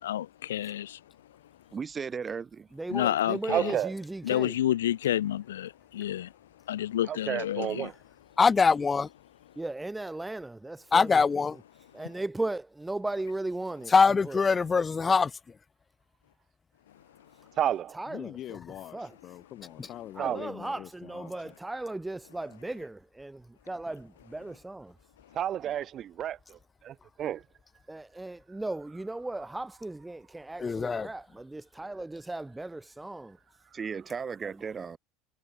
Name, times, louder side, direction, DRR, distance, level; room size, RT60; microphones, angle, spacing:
voice 1, 0.0-1.0 2.9-3.7 4.2-6.3 6.7-7.9, left 12 dB, 85° left, 0.6 m, -29 dB
voice 2, 1.7-2.7 33.7-35.0, right 6 dB, 25° right, 1.5 m, -35 dB
voice 3, 2.7-4.6 9.6-11.2 11.9-14.4 17.9-18.6 18.9-19.1 20.1-24.9 25.6-25.7 27.9-33.4 34.4-34.7, right 2 dB, 10° right, 2.0 m, -37 dB
voice 4, 3.5-3.9 7.1-7.9 17.6-18.0 20.2-20.5 25.3-26.6 26.8-27.4, right 10 dB, 40° right, 0.8 m, -30 dB
voice 5, 8.4-9.1 10.9-11.6 13.9-15.3 30.6-31.1, left 5 dB, 25° left, 0.3 m, -23 dB
voice 6, 18.1-21.5, left 13 dB, 50° left, 3.0 m, -44 dB
hypercardioid pair, 85°, 0 cm